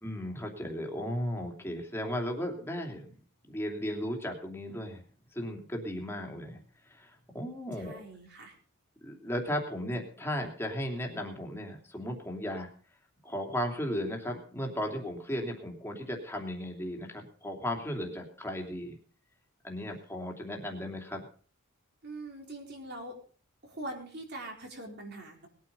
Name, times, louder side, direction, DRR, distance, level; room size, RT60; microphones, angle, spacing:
voice 1, 0.0-3.1 3.5-5.0 5.3-6.6 6.9-8.0 9.0-12.7 13.2-18.9 19.6-21.2, equal, 10° left, 1 dB, 2.9 m, -35 dB
voice 2, 7.8-8.5 22.0-23.1 23.6-25.5, right 1 dB, 50° right, 2 dB, 4.4 m, -42 dB
20.5 x 9.3 x 5.5 m, 0.43 s
head